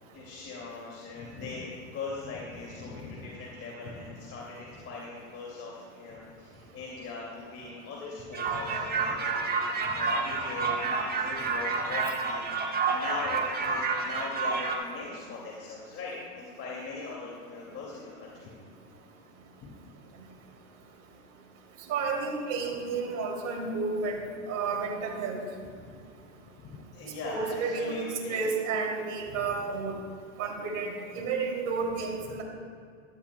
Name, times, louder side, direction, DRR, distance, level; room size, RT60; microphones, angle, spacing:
voice 1, 0.1-12.5 12.8-18.5 19.6-19.7 25.8-26.0 26.6-28.5, left 3 dB, 35° left, -4 dB, 2.6 m, -40 dB
sound 1, 8.3-14.8, right 4 dB, 25° right, 1.6 m, -29 dB
voice 2, 21.9-24.2 24.5-25.4 27.2-30.0 30.4-32.4, right 4 dB, 50° right, -1 dB, 3.0 m, -31 dB
16.5 x 13.0 x 2.3 m, 2.4 s
hypercardioid pair, 95°, 39 cm